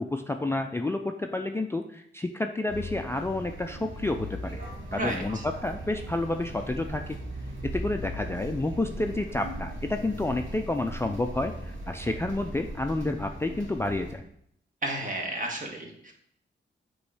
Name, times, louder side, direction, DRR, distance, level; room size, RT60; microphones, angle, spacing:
voice 1, 0.0-4.6 4.9-7.2 7.6-14.2, left 2 dB, 15° left, 5 dB, 0.3 m, -30 dB
sound 1, 2.7-14.1, equal, 85° right, 1.7 m, -39 dB
voice 2, 4.9-5.4 14.8-16.1, right 1 dB, 40° right, 1 dB, 1.5 m, -32 dB
8.1 x 3.1 x 4.8 m, 0.72 s
wide cardioid pair, 100°, 20 cm